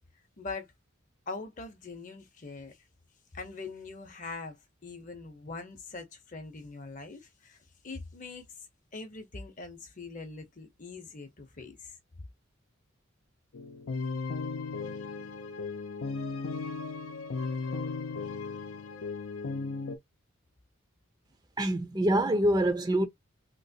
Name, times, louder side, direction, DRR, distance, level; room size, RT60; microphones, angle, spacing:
voice 1, 0.4-0.7 1.3-2.8 3.3-7.6 7.8-8.5 8.9-12.0, left 3 dB, 40° left, 0.8 m, -42 dB
sound 1, 13.5-20.0, left 4 dB, 85° left, 0.6 m, -36 dB
voice 2, 21.6-23.1, right 1 dB, 20° right, 0.5 m, -25 dB
3.0 x 2.9 x 2.8 m
head